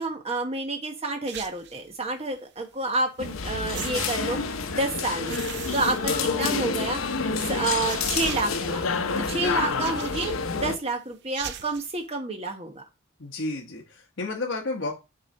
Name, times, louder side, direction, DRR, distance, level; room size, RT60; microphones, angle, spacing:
voice 1, 0.0-5.4 5.7-7.0 7.5-12.8, right 2 dB, 30° right, 4 dB, 1.2 m, -29 dB
sound 1, 1.3-1.9 3.2-3.3 3.7-4.8 5.2-6.7 7.1-7.2 7.7-8.9 9.6-10.6 11.2-11.9, right 8 dB, 55° right, 0.6 m, -38 dB
sound 2, 3.2-10.8, left 5 dB, 80° left, 0.7 m, -28 dB
voice 2, 6.0-6.3 9.3-9.7 13.2-14.9, left 2 dB, 65° left, -1 dB, 1.2 m, -32 dB
6.5 x 3.8 x 4.3 m, 0.27 s
head